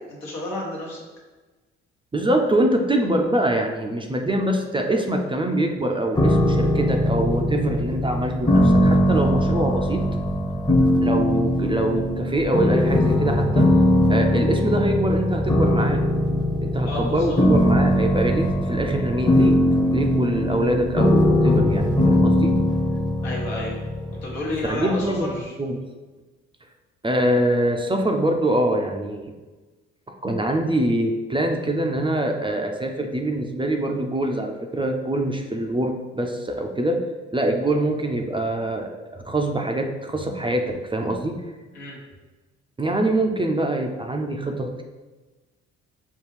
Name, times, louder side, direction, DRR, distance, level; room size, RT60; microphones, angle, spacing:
voice 1, 0.1-1.0 16.8-17.4 23.2-23.8 24.1-25.5 41.7-42.0, left 2 dB, 80° left, -3 dB, 1.1 m, -31 dB
voice 2, 2.1-10.1 11.0-13.7 14.1-16.0 16.6-19.6 19.9-22.6 24.7-25.3 25.6-25.8 27.0-29.3 30.2-37.0 37.3-41.4 42.8-44.8, right 1 dB, 15° right, 3 dB, 0.4 m, -24 dB
sound 1, 6.2-25.1, left 1 dB, 15° left, 0.7 m, -20 dB
5.3 x 2.3 x 3.2 m, 1.2 s
hypercardioid pair, 50°, 34 cm